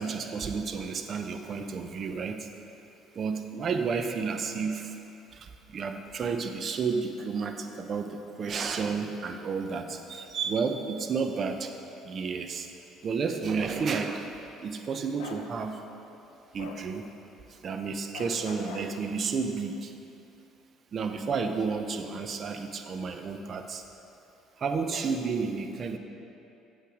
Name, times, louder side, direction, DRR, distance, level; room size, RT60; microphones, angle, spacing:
voice 1, 0.0-2.5 3.1-5.0 5.3-11.7 12.0-12.7 13.0-15.8 16.5-17.1 17.5-19.9 20.9-23.8 24.6-26.0, right 5 dB, 45° right, 6 dB, 0.8 m, -31 dB
Bark, 15.2-15.4 16.6-16.8 18.1-18.9, left 6 dB, 90° left, 0.8 m, -42 dB
8.6 x 7.6 x 5.1 m, 2.8 s
supercardioid pair, 80°, 0 cm